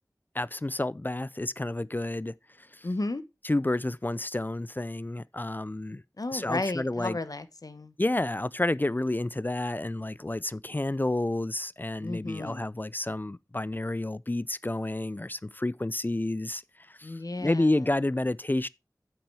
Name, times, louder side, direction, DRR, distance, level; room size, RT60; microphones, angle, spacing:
voice 1, 0.3-2.9 3.4-6.0 6.3-7.2 8.0-18.7, left 2 dB, 30° left, 0.4 m, -30 dB
voice 2, 2.8-3.2 6.2-7.9 12.0-12.7 17.0-17.8, left 2 dB, 60° left, 1.2 m, -33 dB
8.6 x 6.1 x 4.8 m
wide cardioid pair, 40°, 7 cm